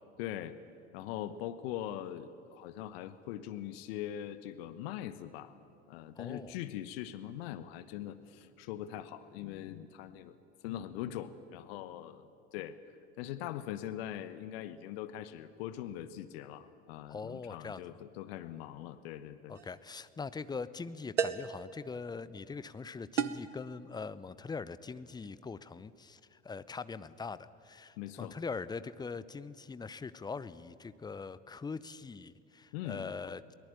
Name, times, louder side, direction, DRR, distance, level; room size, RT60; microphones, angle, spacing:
voice 1, 0.2-0.6 0.9-5.6 5.9-10.4 10.6-12.3 12.5-12.8 13.2-19.6 28.0-28.4 32.7-33.1, left 12 dB, 55° left, 13 dB, 1.1 m, -41 dB
voice 2, 6.2-6.6 17.1-18.0 19.5-33.5, left 4 dB, 10° left, 16 dB, 0.7 m, -42 dB
sound 1, 19.5-19.8 21.2-21.6 23.2-23.6, right 7 dB, 85° right, 0.8 m, -32 dB
23.0 x 18.5 x 9.0 m, 2.5 s
figure-of-eight pair, 70°, 35 cm